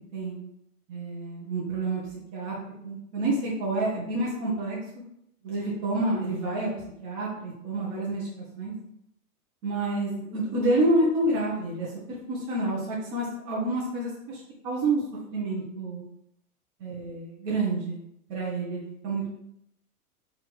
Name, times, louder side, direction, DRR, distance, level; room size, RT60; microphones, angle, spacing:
voice 1, 0.9-2.0 2.3-2.5 2.8-4.8 5.4-6.7 7.0-8.7 9.6-15.0 15.3-16.0 16.8-18.0 18.3-19.3, right 2 dB, 45° right, -5 dB, 1.4 m, -28 dB
4.5 x 3.2 x 3.3 m, 0.77 s
hypercardioid pair, 115°, 45 cm